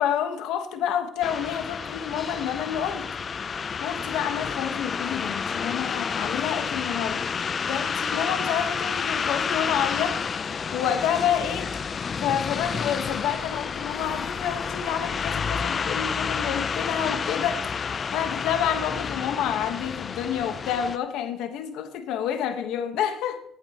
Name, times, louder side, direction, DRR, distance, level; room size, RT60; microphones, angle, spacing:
voice 1, 0.0-3.1 3.8-7.2 7.6-10.2 10.7-11.8 12.2-23.4, left 9 dB, 85° left, 1.2 m, -29 dB
sound 1, 1.2-21.0, left 6 dB, 40° left, 0.5 m, -30 dB
15.5 x 8.9 x 3.0 m
cardioid pair, 110°, 0 cm